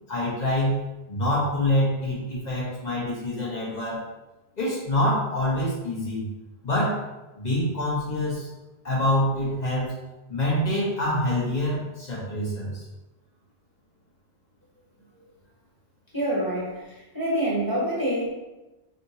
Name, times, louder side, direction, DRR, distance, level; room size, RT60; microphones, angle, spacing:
voice 1, 0.1-4.0 4.6-6.2 6.6-7.0 7.3-8.5 8.8-9.9 10.3-12.8, left 1 dB, 40° left, -6 dB, 1.6 m, -26 dB
voice 2, 16.1-18.3, right 1 dB, 20° left, -8 dB, 1.6 m, -26 dB
5.3 x 3.5 x 2.8 m, 1.1 s
omnidirectional pair, 1.1 m